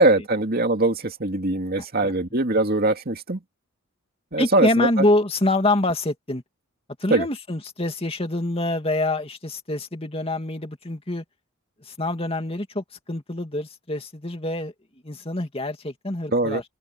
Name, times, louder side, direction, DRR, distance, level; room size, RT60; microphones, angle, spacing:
voice 1, 0.0-3.4 4.3-4.9 7.1-7.3 16.3-16.6, right 2 dB, 45° right, 2.5 m, -21 dB
voice 2, 1.8-2.1 4.4-6.4 7.0-11.2 11.8-14.7 15.0-16.6, left 1 dB, 30° left, 2.5 m, -25 dB
head